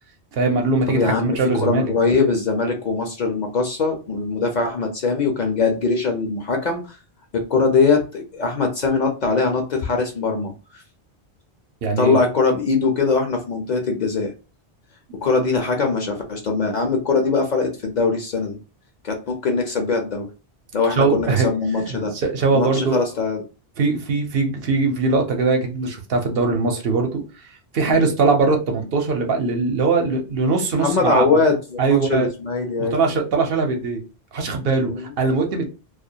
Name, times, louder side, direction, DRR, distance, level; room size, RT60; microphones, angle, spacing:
voice 1, 0.3-1.8 11.8-12.2 20.9-21.5 21.8-23.0 23.8-27.2 27.7-31.4 31.8-32.3 32.8-34.0 34.3-35.7, right 4 dB, 65° right, 3 dB, 0.8 m, -21 dB
voice 2, 0.9-7.0 7.5-10.8 12.0-14.3 15.2-18.6 19.0-20.3 20.7-22.1 22.5-23.4 27.9-28.1 30.8-33.0 34.9-35.1, left 4 dB, 55° left, 2 dB, 0.6 m, -21 dB
2.3 x 2.1 x 2.7 m, 0.32 s
omnidirectional pair, 1.1 m